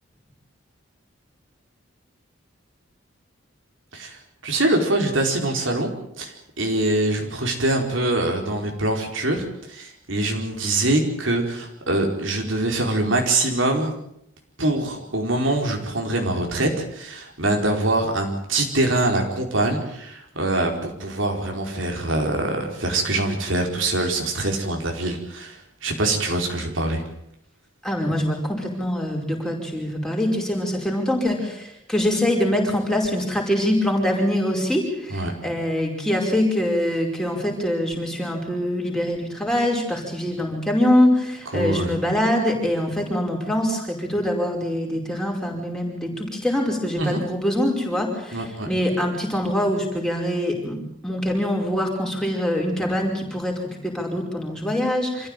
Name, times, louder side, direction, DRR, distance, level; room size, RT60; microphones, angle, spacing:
voice 1, 3.9-5.9 6.2-13.9 14.6-27.0 35.1-35.3 41.5-41.9 47.0-47.2 48.3-48.7, right 2 dB, 75° right, 2 dB, 4.6 m, -24 dB
voice 2, 27.8-50.8 51.0-55.3, left 1 dB, 5° left, -1 dB, 5.2 m, -24 dB
26.5 x 15.0 x 9.1 m, 0.78 s
head